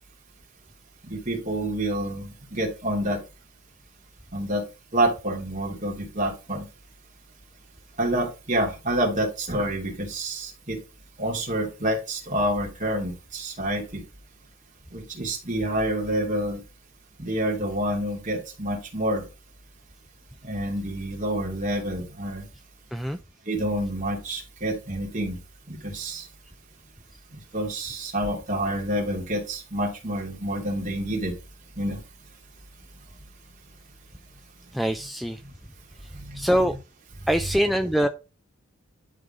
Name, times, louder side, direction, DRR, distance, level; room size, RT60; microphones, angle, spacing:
voice 1, 1.0-3.2 4.3-4.6 4.9-6.7 8.0-10.8 11.2-14.0 14.9-16.6 17.2-19.2 20.4-22.4 23.5-25.4 25.7-26.3 27.3-31.4 31.8-32.0 36.1-36.5 37.2-37.3, right 1 dB, 35° right, 2.8 m, -28 dB
voice 2, 34.7-35.4 36.3-36.7 37.3-38.1, equal, ahead, 0.4 m, -23 dB
11.0 x 3.9 x 5.1 m
head